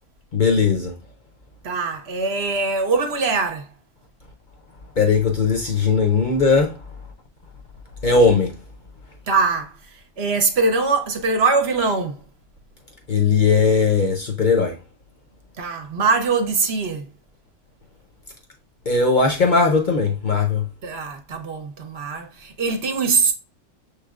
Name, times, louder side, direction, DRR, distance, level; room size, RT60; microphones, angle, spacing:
voice 1, 0.3-0.9 5.0-6.7 8.0-8.5 13.1-14.7 18.9-20.6, left 4 dB, 45° left, 0.7 m, -18 dB
voice 2, 1.6-3.7 9.3-9.7 10.2-12.2 15.6-17.1 20.8-23.3, right 4 dB, 60° right, 1.0 m, -22 dB
6.8 x 3.2 x 2.4 m
omnidirectional pair, 1.3 m